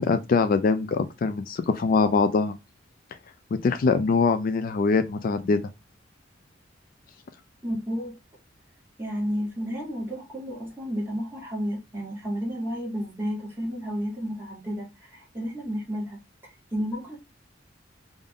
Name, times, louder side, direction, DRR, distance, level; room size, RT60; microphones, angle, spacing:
voice 1, 0.0-2.6 3.6-5.6, left 4 dB, 50° left, 0.3 m, -23 dB
voice 2, 7.6-8.2 9.0-17.2, equal, 15° right, 1.7 m, -32 dB
3.5 x 2.5 x 3.6 m
head